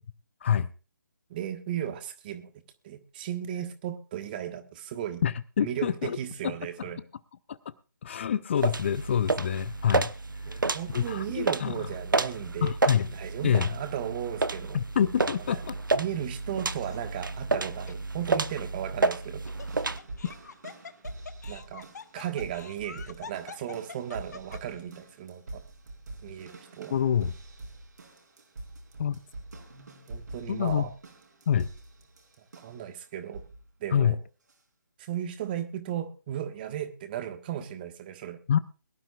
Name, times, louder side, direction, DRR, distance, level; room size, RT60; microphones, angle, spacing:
voice 1, 1.3-2.5 2.8-5.2 5.6-7.0 10.5-12.7 13.1-14.8 15.5-15.6 15.9-19.4 21.5-21.9 22.1-25.6 26.2-27.0 30.1-30.9 32.6-33.4 33.8-34.2 35.0-38.4, right 10 dB, 30° right, 8 dB, 1.4 m, -35 dB
voice 2, 5.2-6.2 6.4-6.9 7.5-7.6 8.0-10.1 10.5-10.6 10.9-11.7 12.6-13.1 13.4-13.7 14.7-15.8 26.9-27.3 29.0-29.2 30.5-30.8 31.5-31.7 33.9-34.2 38.5-38.6, left 8 dB, 35° left, 16 dB, 0.5 m, -26 dB
sound 1, 8.6-20.0, right 3 dB, 80° right, 0.9 m, -30 dB
Laughter, 16.8-17.3 17.9-18.0 19.2-24.8, left 5 dB, 55° left, 1.0 m, -45 dB
sound 2, 19.7-32.9 33.3-33.7 34.5-34.6, right 2 dB, 65° right, 3.7 m, -45 dB
22.5 x 12.0 x 2.4 m, 0.34 s
figure-of-eight pair, 145°, 11 cm